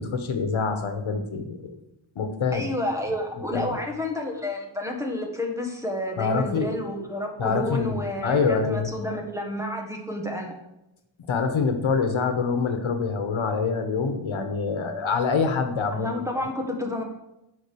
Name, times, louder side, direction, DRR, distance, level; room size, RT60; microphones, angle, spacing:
voice 1, 0.0-1.8 2.1-2.6 3.5-3.8 6.2-6.7 7.4-8.9 11.3-16.1, left 5 dB, 85° left, 7 dB, 1.3 m, -25 dB
voice 2, 2.5-10.5 15.9-17.0, left 1 dB, 5° right, 1 dB, 1.5 m, -30 dB
10.0 x 5.4 x 6.9 m, 0.90 s
wide cardioid pair, 180°, 47 cm